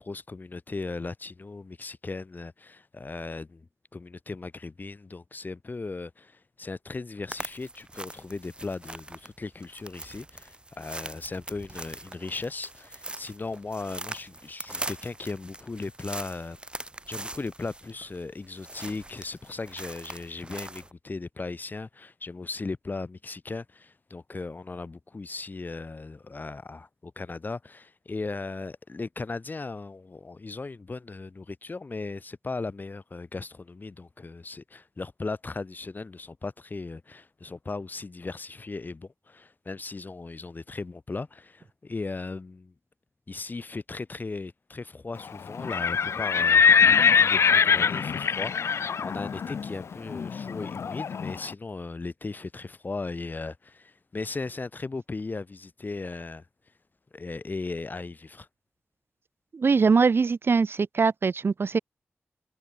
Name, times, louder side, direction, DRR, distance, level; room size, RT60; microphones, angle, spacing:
voice 1, 0.0-16.6 17.1-42.7 43.3-56.4 57.1-58.5, left 3 dB, 40° left, 1.4 m, -37 dB
sound 1, 7.3-20.9, right 2 dB, 20° right, 3.8 m, -41 dB
Livestock farm animals working animals, 45.5-51.4, left 6 dB, 75° left, 0.4 m, -23 dB
voice 2, 59.5-61.8, right 5 dB, 55° right, 0.6 m, -22 dB
wide cardioid pair, 75°, 5 cm